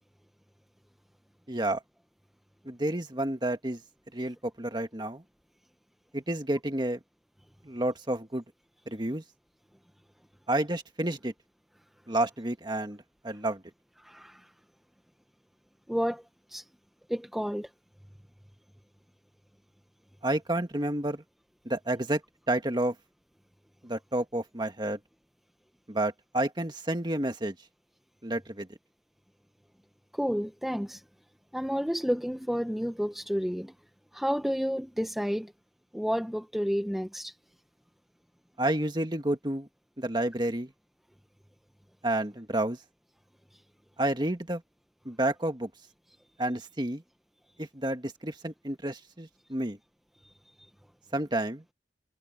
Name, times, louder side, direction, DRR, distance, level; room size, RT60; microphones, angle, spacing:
voice 1, 1.5-1.8 2.7-3.8 4.1-5.2 6.1-7.0 7.6-8.4 8.9-9.2 10.5-11.3 12.1-13.6 20.2-21.2 21.7-22.2 22.5-23.0 23.8-25.0 25.9-27.5 28.2-28.7 38.6-39.7 40.0-40.7 42.0-42.8 44.0-44.6 45.1-45.7 46.4-47.0 47.6-49.8 51.1-51.6, right 1 dB, 25° right, 1.8 m, -30 dB
voice 2, 14.0-14.5 15.9-16.7 17.1-17.7 30.1-31.0 31.5-33.7 34.1-35.5 35.9-37.4 43.5-43.6 50.2-50.3, equal, ahead, 0.7 m, -31 dB
head